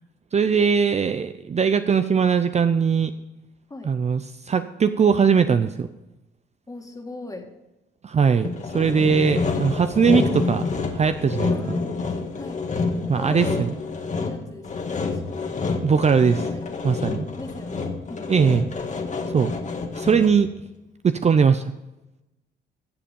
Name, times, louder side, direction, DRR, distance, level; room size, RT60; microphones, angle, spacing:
voice 1, 0.3-3.1 3.8-5.9 8.0-8.5 8.7-10.6 10.9-11.8 13.1-13.7 15.8-16.5 16.8-17.2 18.3-18.7 19.3-19.5 20.0-20.5 21.0-21.6, right 6 dB, 35° right, 10 dB, 0.6 m, -20 dB
voice 2, 6.7-7.5 11.5-11.9 12.3-12.6 13.0-13.7 14.1-15.2 16.5-16.6 17.4-18.5, left 2 dB, 15° left, 3 dB, 2.2 m, -39 dB
Sawing, 8.4-20.5, left 4 dB, 35° left, 1.7 m, -28 dB
14.0 x 7.7 x 5.3 m, 0.98 s
cardioid pair, 90°, 20 cm